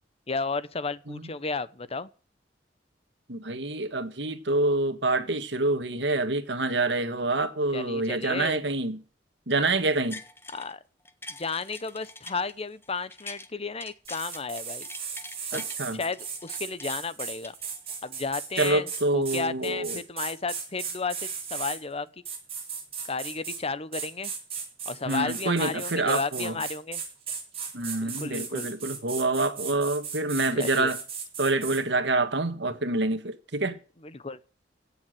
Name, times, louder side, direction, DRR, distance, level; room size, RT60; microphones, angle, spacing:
voice 1, 0.3-2.1 7.7-8.6 10.5-10.8 11.4-14.9 15.5-15.6 15.9-17.5 18.0-21.2 21.5-22.1 23.0-24.3 24.9-27.0 28.0-28.7 30.5-30.9 34.0-34.4, left 4 dB, 35° left, 0.9 m, -33 dB
voice 2, 3.3-9.0 9.5-10.2 15.5-16.0 18.6-20.0 25.1-26.6 27.7-31.0 31.4-33.8, right 2 dB, 70° right, 1.6 m, -27 dB
sound 1, 9.9-10.7 11.1-13.5 13.8-15.8 16.1-18.1 18.6-18.7, left 2 dB, 15° left, 1.4 m, -44 dB
sound 2, 14.0-21.8 22.2-23.6 23.9-31.8, right 6 dB, 35° right, 7.3 m, -36 dB
16.5 x 7.2 x 7.8 m
head